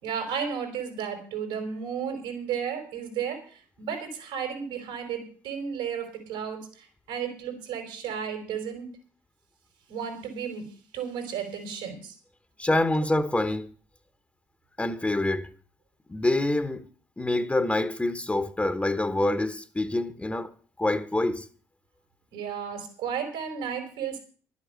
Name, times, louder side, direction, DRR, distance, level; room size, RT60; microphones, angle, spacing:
voice 1, 0.0-8.9 9.9-12.1 22.3-24.2, right 7 dB, 80° right, 4.7 m, -33 dB
voice 2, 12.6-13.7 14.8-15.5 16.1-16.8 17.2-20.5 20.8-21.4, left 2 dB, 15° left, 1.2 m, -26 dB
12.0 x 8.3 x 8.1 m
supercardioid pair, 65°, 9 cm